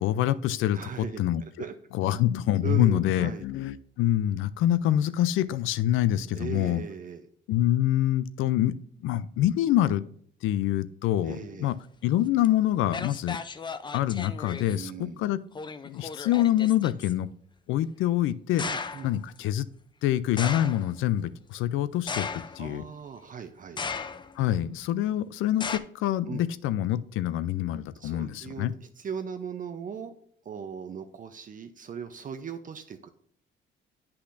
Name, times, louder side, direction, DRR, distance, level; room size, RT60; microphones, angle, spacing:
voice 1, 0.0-1.4 1.9-6.8 7.5-8.7 9.0-10.0 10.4-11.8 12.0-13.4 13.9-15.4 15.8-17.3 17.7-18.6 19.0-19.6 20.0-22.8 24.4-28.7, left 12 dB, 85° left, 16 dB, 0.4 m, -26 dB
voice 2, 0.7-1.7 2.6-3.5 6.3-7.3 11.2-11.7 14.7-15.2 18.6-19.1 22.6-23.8 26.3-26.4 27.9-30.1 30.4-33.1, right 7 dB, 40° right, 7 dB, 0.6 m, -38 dB
sound 1, 12.4-12.5 12.9-14.8 15.5-17.1 18.6-19.1 20.4-20.9 22.1-22.8 23.8-24.4 25.6-25.8, left 5 dB, 25° left, 0.4 m, -35 dB
8.2 x 5.7 x 2.5 m, 0.64 s
cardioid pair, 90°, 20 cm